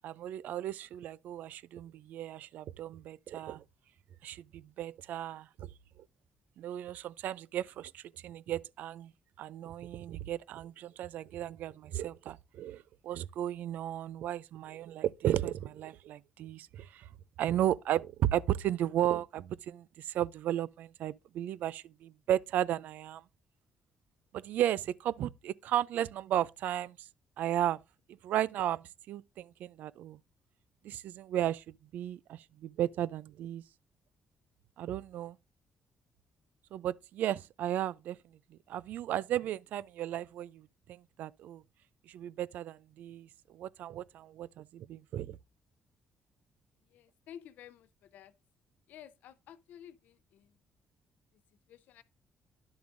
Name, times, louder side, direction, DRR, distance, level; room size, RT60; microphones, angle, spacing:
voice 1, 0.0-3.6 4.2-5.7 6.6-9.1 9.4-17.1 17.4-23.2 24.3-27.1 27.4-27.8 28.2-30.2 30.8-33.6 34.8-35.4 36.7-38.2 38.5-41.6 42.1-45.4, right 12 dB, 80° right, 0.3 m, -35 dB
voice 2, 46.8-48.3 48.9-50.6 51.3-51.4 51.7-52.0, left 10 dB, 80° left, 0.6 m, -53 dB
10.5 x 6.9 x 2.5 m
cardioid pair, 110°, 3 cm